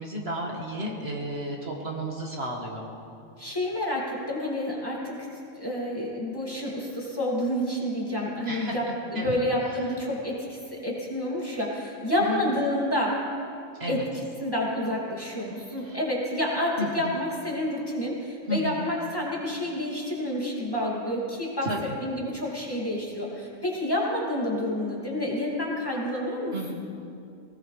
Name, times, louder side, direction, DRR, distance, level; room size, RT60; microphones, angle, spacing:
voice 1, 0.0-2.8 8.5-8.8 9.1-9.4 12.2-12.4 13.8-14.0 15.8-16.0 16.8-17.1 18.5-18.8 21.6-21.9 26.5-26.7, equal, 50° right, -1 dB, 1.8 m, -32 dB
voice 2, 3.4-5.3 5.6-8.9 9.1-13.2 13.9-26.7, left 1 dB, 15° left, -5 dB, 2.5 m, -29 dB
19.5 x 19.0 x 3.3 m, 2.6 s
omnidirectional pair, 1.4 m